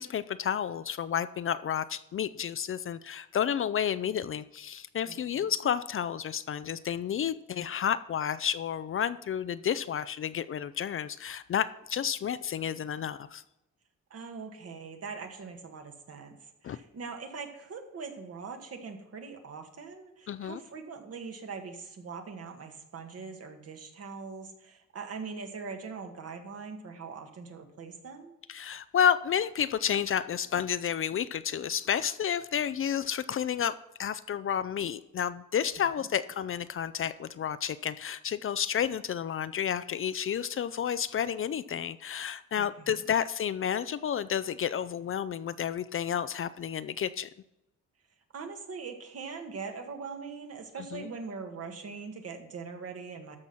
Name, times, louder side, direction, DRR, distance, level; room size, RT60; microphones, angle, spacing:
voice 1, 0.0-13.4 16.6-16.8 20.3-20.6 28.5-47.3 50.9-51.1, left 8 dB, 45° left, 15 dB, 0.4 m, -31 dB
voice 2, 5.0-5.5 14.1-16.4 16.6-28.4 36.0-36.1 42.6-43.1 48.3-53.4, right 5 dB, 55° right, 5 dB, 1.6 m, -42 dB
13.0 x 6.1 x 5.7 m, 0.90 s
cardioid pair, 120°, 30 cm